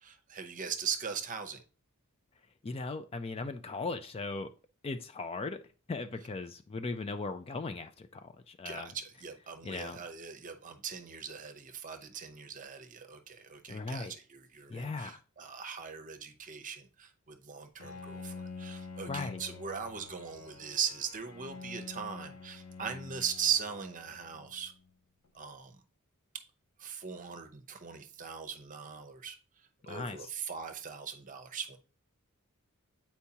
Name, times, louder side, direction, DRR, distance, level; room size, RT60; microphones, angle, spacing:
voice 1, 0.0-1.6 8.6-24.7 25.3-25.8 26.8-29.4 29.8-31.8, right 7 dB, 35° right, 7 dB, 0.7 m, -39 dB
voice 2, 2.6-4.5 4.8-5.6 5.9-8.9 9.6-10.0 13.7-14.1 14.7-15.2 19.1-19.4 29.9-30.3, left 3 dB, 25° left, 9 dB, 0.3 m, -38 dB
Bowed string instrument, 17.8-24.9, left 4 dB, 80° left, 0.7 m, -47 dB
8.3 x 4.5 x 2.8 m, 0.37 s
head